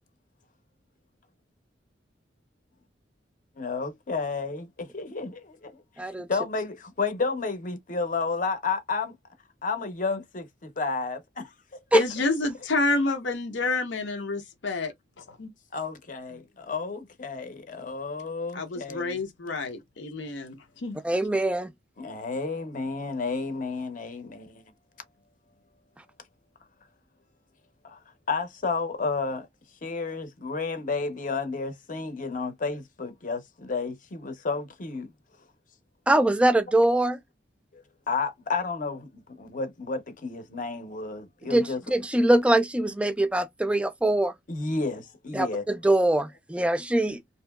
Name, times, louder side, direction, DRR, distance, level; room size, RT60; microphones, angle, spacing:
voice 1, 3.6-5.8 6.3-9.2 9.6-11.5 11.9-12.0 15.7-19.2 22.0-24.6 27.8-28.0 28.3-29.5 29.8-35.1 37.7-41.8 44.5-45.6, left 4 dB, 45° left, 0.7 m, -31 dB
voice 2, 11.9-15.5 18.5-21.0, left 3 dB, 90° left, 0.8 m, -29 dB
voice 3, 21.0-21.7 36.1-37.2 41.4-44.3 45.3-47.2, right 1 dB, 5° right, 0.3 m, -23 dB
2.8 x 2.7 x 2.2 m
head